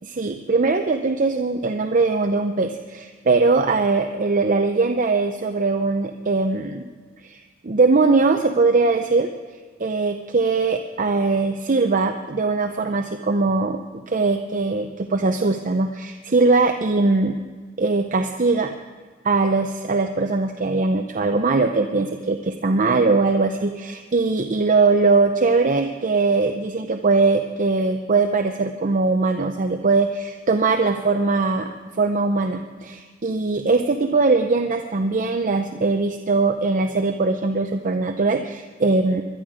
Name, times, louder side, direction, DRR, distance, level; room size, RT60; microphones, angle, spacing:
voice 1, 0.0-6.9 7.2-9.3 9.8-13.8 14.1-17.4 17.8-18.7 19.2-31.7 32.0-39.2, right 3 dB, 40° right, 5 dB, 0.7 m, -21 dB
21.0 x 12.5 x 5.0 m, 1.5 s
head